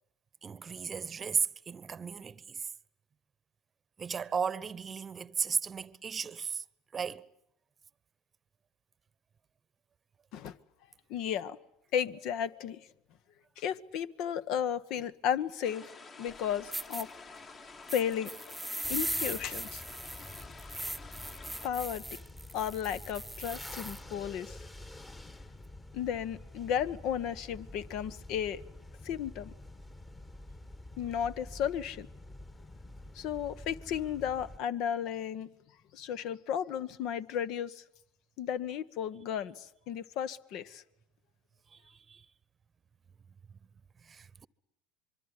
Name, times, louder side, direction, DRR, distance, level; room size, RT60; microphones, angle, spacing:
voice 1, 0.4-2.7 4.0-6.6 6.9-7.3 41.7-42.2 44.0-44.5, right 6 dB, 30° right, 1.0 m, -35 dB
voice 2, 11.1-11.6 11.9-12.8 13.6-15.8 16.2-17.1 17.9-18.3 18.9-19.8 21.6-22.0 22.5-24.5 25.9-28.6 29.0-29.5 31.0-32.1 33.1-35.5 35.9-37.8 38.4-40.8, left 9 dB, 60° left, 1.3 m, -34 dB
sound 1, 15.6-21.7, left 4 dB, 35° left, 2.6 m, -50 dB
sound 2, 16.3-16.4 16.7-17.0 17.9-24.0, right 1 dB, ahead, 1.0 m, -39 dB
sound 3, 18.8-34.6, left 1 dB, 20° left, 1.9 m, -48 dB
25.5 x 23.5 x 9.9 m
hypercardioid pair, 90°, 0 cm